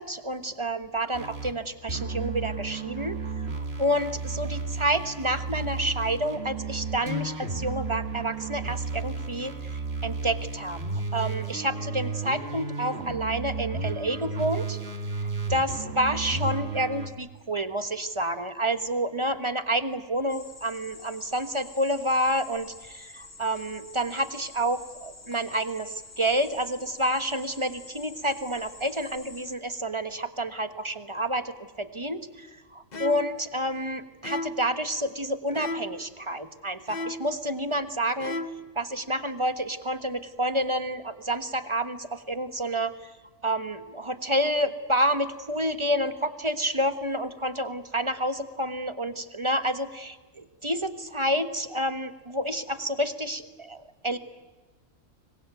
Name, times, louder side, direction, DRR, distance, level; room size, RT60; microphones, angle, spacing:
voice 1, 0.0-3.2 3.5-10.8 11.1-14.8 15.5-38.4 38.7-42.9 43.4-54.2, right 1 dB, 25° right, 10 dB, 1.4 m, -29 dB
sound 1, 1.1-1.6 1.9-17.1, right 4 dB, 50° right, 2.2 m, -33 dB
sound 2, 20.3-29.5, left 2 dB, 65° left, 3.2 m, -48 dB
sound 3, 32.9-33.4 34.2-34.7 35.5-36.1 36.9-37.4 38.2-38.7, left 1 dB, 35° left, 1.3 m, -35 dB
26.0 x 22.0 x 9.3 m, 1.3 s
omnidirectional pair, 1.4 m